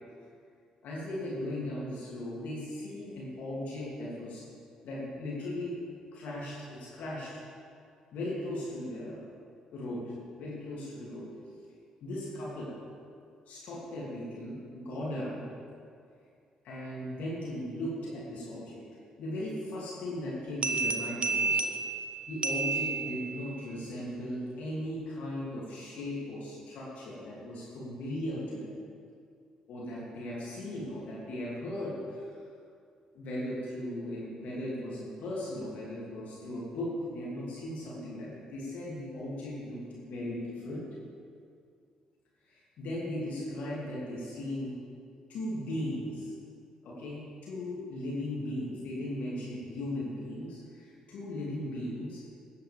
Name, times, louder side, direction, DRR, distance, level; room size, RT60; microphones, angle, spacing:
voice 1, 0.8-4.4 4.8-5.7 6.1-7.3 8.1-9.2 9.7-10.1 10.4-11.3 12.0-12.8 13.5-15.5 16.6-18.8 19.2-21.6 22.3-28.7 29.7-32.3 33.1-40.9 42.5-44.8 45.3-46.3 46.8-52.2, left 1 dB, 60° left, -6 dB, 2.9 m, -37 dB
sound 1, 20.6-23.6, right 4 dB, 40° right, 0.9 m, -31 dB
17.5 x 9.0 x 3.6 m, 2.3 s
figure-of-eight pair, 40°, 3 cm